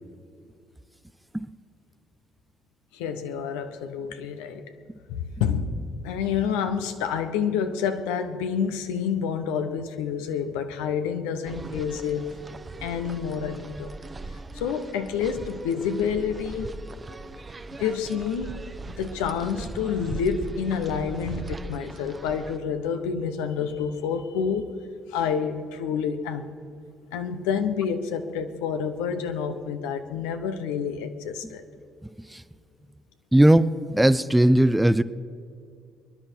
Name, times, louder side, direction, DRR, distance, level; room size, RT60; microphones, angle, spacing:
voice 1, 2.9-4.6 5.1-12.3 12.8-13.9 14.5-16.7 17.8-24.7 25.1-26.5 27.1-31.6, left 7 dB, 80° left, 8 dB, 0.9 m, -28 dB
sound 1, 11.4-22.6, right 3 dB, 30° right, 1.0 m, -39 dB
voice 2, 33.3-35.0, right 1 dB, 10° right, 15 dB, 0.6 m, -18 dB
23.5 x 11.0 x 4.5 m, 2.3 s
hypercardioid pair, 50°, 0 cm